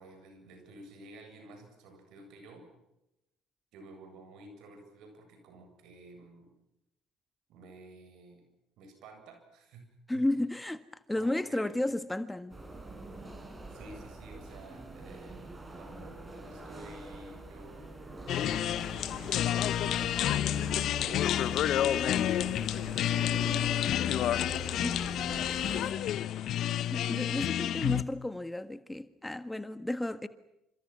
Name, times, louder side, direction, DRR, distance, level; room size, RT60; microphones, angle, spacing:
voice 1, 0.0-2.7 3.7-6.5 7.5-8.4 8.8-9.8 10.1-10.2 11.1-11.9 13.7-24.2 24.6-26.2, right 2 dB, 70° right, 8.0 m, -52 dB
voice 2, 10.1-12.6 24.8-25.0 26.8-30.3, left 1 dB, 10° left, 1.5 m, -33 dB
sound 1, 12.5-25.9, right 2 dB, 25° right, 6.9 m, -44 dB
sound 2, 18.3-28.0, left 11 dB, 60° left, 1.0 m, -29 dB
29.0 x 28.0 x 6.2 m
hypercardioid pair, 55°, 0 cm